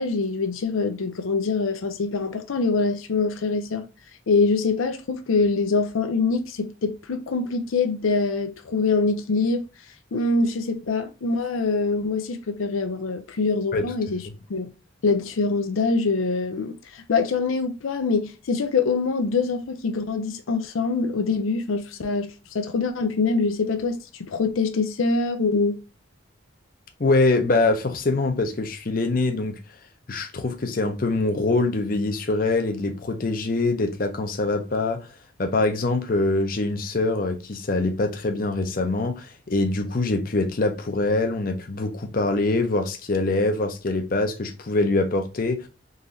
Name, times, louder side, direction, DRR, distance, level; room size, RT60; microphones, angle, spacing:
voice 1, 0.0-3.9 4.3-9.6 10.1-14.2 14.5-14.7 15.0-25.8, left 4 dB, 85° left, 0.5 m, -24 dB
voice 2, 27.0-29.6 30.1-35.1 35.4-45.7, left 2 dB, 45° left, 0.6 m, -24 dB
3.8 x 3.1 x 2.6 m
head